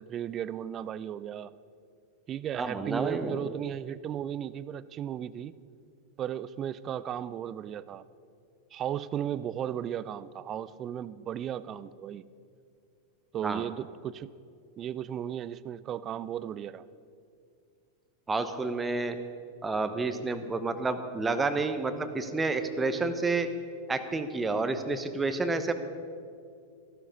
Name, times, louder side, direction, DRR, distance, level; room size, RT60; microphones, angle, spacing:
voice 1, 0.0-1.5 2.3-5.5 6.2-8.0 8.7-12.2 13.3-14.3 14.8-16.9, right 10 dB, 30° right, 18 dB, 0.4 m, -35 dB
voice 2, 2.5-3.5 13.4-13.6 18.3-19.2 19.6-23.5 23.9-25.7, right 3 dB, 15° right, 9 dB, 0.9 m, -30 dB
14.5 x 12.5 x 5.4 m, 2.4 s
figure-of-eight pair, 90°, 0 cm